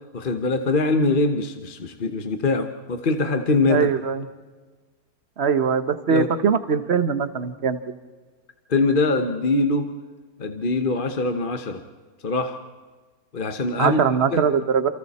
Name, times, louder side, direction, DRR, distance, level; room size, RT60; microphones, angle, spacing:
voice 1, 0.1-3.9 6.1-6.3 8.7-9.9 10.4-11.8 12.2-12.6 13.3-14.0 14.3-14.4, left 3 dB, 35° left, 7 dB, 1.1 m, -23 dB
voice 2, 3.7-4.3 5.4-7.8 13.8-14.9, right 6 dB, 45° right, 11 dB, 1.3 m, -21 dB
28.5 x 28.5 x 4.3 m, 1.3 s
omnidirectional pair, 1.7 m